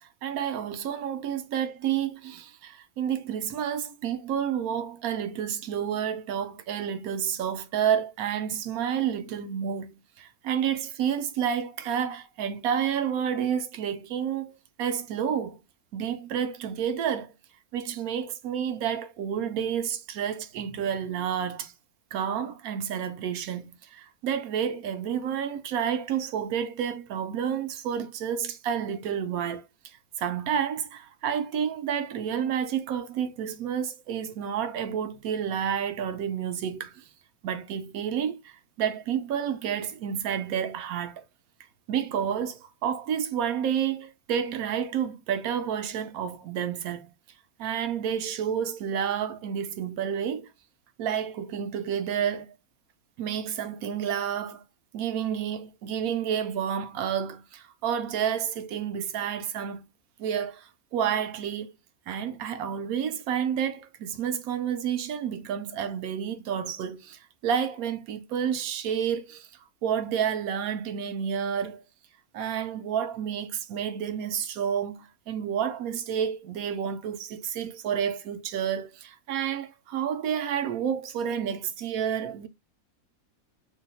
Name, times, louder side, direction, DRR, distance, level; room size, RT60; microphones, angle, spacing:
voice 1, 0.2-15.6 15.9-17.3 17.7-21.7 22.1-29.6 30.2-37.0 37.4-41.2 41.9-47.1 47.6-50.5 51.0-52.5 53.2-54.6 54.9-59.9 60.2-61.8 62.1-69.5 69.8-71.8 72.3-82.5, right 8 dB, 80° right, 1.1 m, -30 dB
2.9 x 2.3 x 4.0 m
omnidirectional pair, 1.5 m